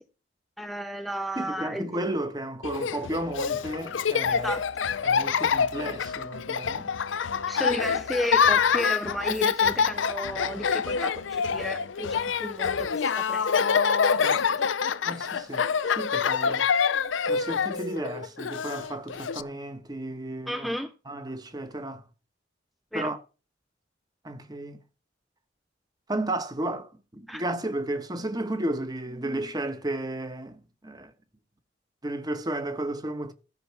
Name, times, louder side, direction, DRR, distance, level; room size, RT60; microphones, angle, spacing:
voice 1, 0.6-1.9 4.3-4.9 7.5-13.8 14.3-14.6 16.2-16.6 20.5-20.9 22.9-23.1 27.3-27.4, equal, ahead, 0.5 m, -33 dB
voice 2, 1.4-4.5 5.0-6.9 14.2-14.5 15.0-16.7 17.3-20.7 21.1-22.1 22.9-23.2 24.2-24.8 26.1-31.1 32.0-33.3, right 1 dB, 20° right, 1.1 m, -33 dB
Laughter, 2.6-19.4, left 6 dB, 85° left, 0.6 m, -26 dB
13.5 x 5.6 x 5.8 m
head